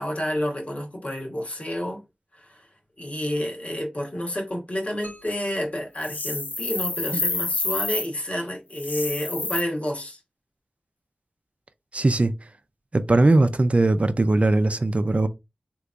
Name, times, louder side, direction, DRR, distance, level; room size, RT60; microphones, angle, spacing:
voice 1, 0.0-2.0 2.3-2.7 3.0-10.2, equal, 40° left, 1.3 m, -30 dB
sound 1, 5.0-6.9, left 1 dB, 85° left, 1.2 m, -50 dB
sound 2, 6.0-8.1 8.7-9.6, left 3 dB, 60° left, 0.6 m, -28 dB
voice 2, 11.9-12.3 12.9-15.3, right 2 dB, 40° right, 0.5 m, -19 dB
3.3 x 2.9 x 2.5 m
cardioid pair, 40°, 3 cm